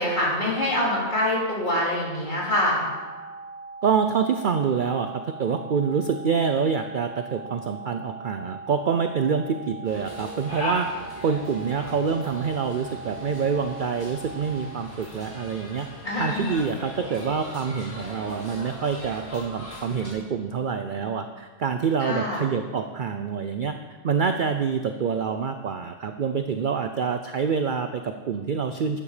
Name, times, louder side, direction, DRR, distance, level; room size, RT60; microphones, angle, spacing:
voice 1, 0.0-2.8 16.0-16.6 22.0-22.4, left 1 dB, 35° left, -4 dB, 3.2 m, -25 dB
sound 1, 2.6-14.7, right 3 dB, ahead, 4.3 m, -41 dB
voice 2, 3.8-10.9 11.2-15.9 16.2-23.8 24.0-29.0, right 6 dB, 55° right, 8 dB, 0.6 m, -26 dB
sound 2, 9.8-20.1, left 1 dB, 65° left, 4.1 m, -38 dB
12.5 x 9.2 x 5.0 m, 1.4 s
omnidirectional pair, 1.4 m